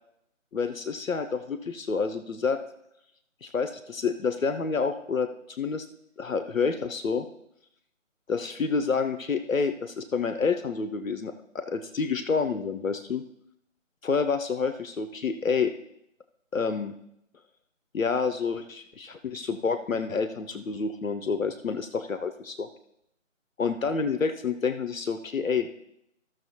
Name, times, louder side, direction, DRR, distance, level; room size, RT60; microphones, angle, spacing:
voice 1, 0.5-2.6 3.4-5.9 6.2-7.3 8.3-13.2 14.0-15.7 16.5-16.9 17.9-22.7 23.6-25.7, left 5 dB, 75° left, 9 dB, 0.6 m, -28 dB
14.0 x 6.3 x 2.9 m, 0.78 s
figure-of-eight pair, 165°, 40 cm